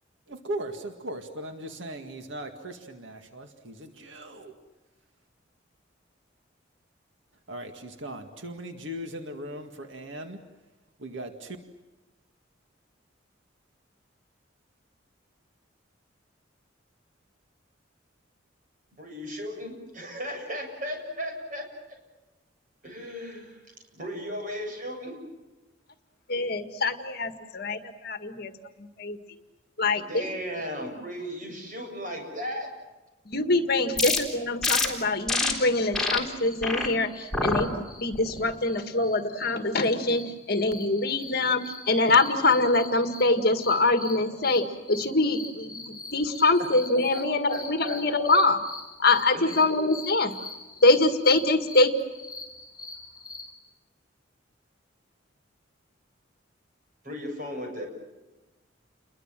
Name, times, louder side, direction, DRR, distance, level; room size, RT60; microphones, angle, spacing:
voice 1, 0.3-4.6 7.5-10.4 11.0-11.6, right 1 dB, 75° right, 5 dB, 2.1 m, -38 dB
voice 2, 19.0-22.0 22.8-23.6 23.9-25.2 30.0-32.7 47.1-47.2 47.5-48.0 49.3-49.6 57.0-57.8, equal, 45° right, 3 dB, 7.6 m, -36 dB
voice 3, 26.3-28.5 28.8-29.2 29.8-30.2 33.3-48.6 49.0-50.3 50.8-51.9, left 2 dB, 50° left, 8 dB, 1.9 m, -24 dB
sound 1, 34.0-34.2 34.6-34.9 35.3-35.5 35.9-36.2 36.6-36.9 37.3-37.6 38.1-38.5, left 3 dB, 5° left, 3.8 m, -26 dB
sound 2, 36.3-53.5, left 3 dB, 20° left, 7.0 m, -43 dB
29.5 x 22.5 x 7.6 m, 1.1 s
head